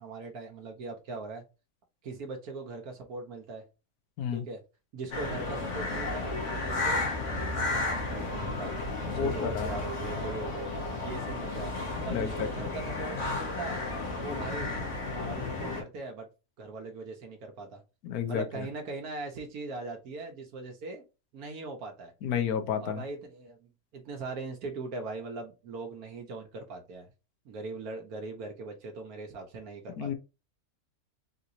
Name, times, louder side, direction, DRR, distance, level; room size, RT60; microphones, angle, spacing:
voice 1, 0.0-1.4 2.0-3.6 4.3-4.6 4.9-6.3 6.6-7.0 7.6-8.7 9.1-10.7 11.0-11.7 12.0-13.8 14.2-14.8 15.0-16.3 16.6-17.8 18.3-21.0 21.3-22.1 22.8-27.1 27.4-30.1, right 3 dB, 80° right, 1.3 m, -40 dB
sound 1, 5.1-15.8, left 2 dB, 60° left, 1.4 m, -33 dB
voice 2, 9.0-9.7 12.0-12.3 18.0-18.7 22.2-23.0 30.0-30.1, left 8 dB, 85° left, 1.2 m, -31 dB
3.9 x 2.8 x 2.5 m
omnidirectional pair, 1.5 m